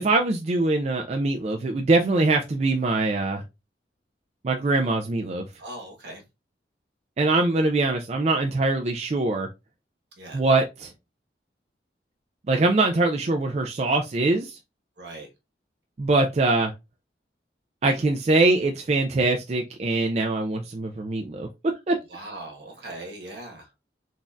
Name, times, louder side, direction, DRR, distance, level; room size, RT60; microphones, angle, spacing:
voice 1, 0.0-3.4 4.4-5.5 7.2-9.5 10.3-10.9 12.5-14.6 16.0-16.7 17.8-21.5 21.9-22.0, right 2 dB, 35° right, 0.3 m, -23 dB
voice 2, 5.6-6.2 10.2-10.4 15.0-15.3 22.1-23.7, right 1 dB, 75° right, 1.2 m, -39 dB
3.9 x 2.5 x 2.3 m
head